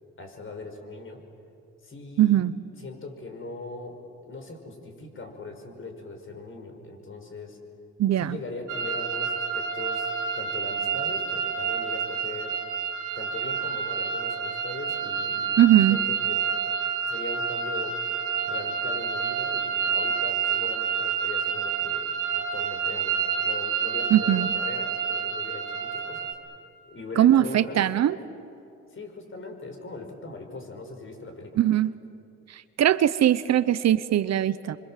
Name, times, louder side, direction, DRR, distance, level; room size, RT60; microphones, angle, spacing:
voice 1, 0.2-1.2 1.8-2.4 2.8-7.6 8.2-10.1 10.4-12.6 13.2-15.4 15.9-16.4 17.1-18.0 18.4-26.3 26.8-27.9 28.9-31.6, left 3 dB, 40° left, 4 dB, 5.4 m, -40 dB
voice 2, 2.2-2.5 8.0-8.4 15.6-16.0 24.1-24.5 27.2-28.2 31.6-31.9 32.5-34.8, right 12 dB, 60° right, 15 dB, 0.8 m, -20 dB
sound 1, 8.7-26.3, right 6 dB, 90° right, 2.0 m, -28 dB
27.5 x 25.0 x 7.6 m, 2.6 s
cardioid pair, 90°, 30 cm